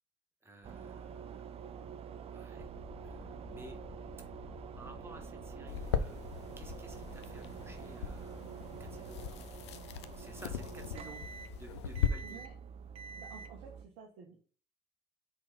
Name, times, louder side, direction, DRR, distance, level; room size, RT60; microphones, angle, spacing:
voice 1, 0.4-1.4 2.3-2.7 3.0-3.8 4.8-6.2 6.6-8.4 8.9-9.4 10.1-11.2 11.6-12.4, right 1 dB, 15° right, 5 dB, 1.5 m, -53 dB
sound 1, 0.6-13.8, right 7 dB, 45° right, 0.6 m, -47 dB
sound 2, 2.6-13.2, left 6 dB, 40° left, 0.6 m, -55 dB
sound 3, 5.7-12.1, left 9 dB, 85° left, 0.5 m, -39 dB
voice 2, 12.2-12.6 13.2-14.4, right 6 dB, 70° right, 0 dB, 1.2 m, -51 dB
5.9 x 3.8 x 5.2 m, 0.40 s
hypercardioid pair, 60°, 14 cm